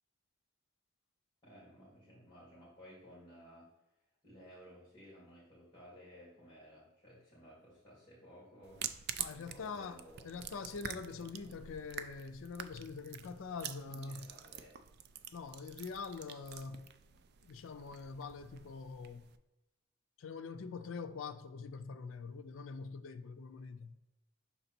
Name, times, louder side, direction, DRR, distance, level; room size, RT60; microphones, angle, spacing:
voice 1, 1.4-3.7 4.2-8.8 9.3-10.5 11.2-11.5 13.9-14.7, equal, 20° left, 2.3 m, -57 dB
sound 1, 8.6-19.4, right 9 dB, 55° right, 0.4 m, -47 dB
voice 2, 9.2-14.3 15.3-19.3 20.2-23.9, left 5 dB, 80° left, 0.4 m, -44 dB
5.9 x 4.0 x 4.3 m
head